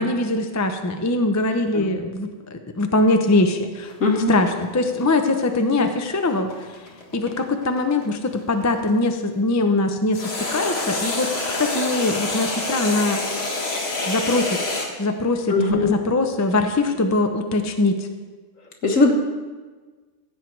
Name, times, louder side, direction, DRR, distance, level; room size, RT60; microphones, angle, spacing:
voice 1, 0.0-3.9 4.3-6.7 7.1-11.3 11.6-13.2 14.1-14.6 15.0-18.1, left 2 dB, 20° left, 6 dB, 0.5 m, -22 dB
sound 1, 3.9-9.0 10.1-14.9, left 2 dB, 50° left, 1.8 m, -27 dB
voice 2, 4.0-4.3 15.5-15.9 18.8-19.1, left 3 dB, 70° left, 1 dB, 1.9 m, -19 dB
15.5 x 8.2 x 4.6 m, 1.4 s
omnidirectional pair, 1.4 m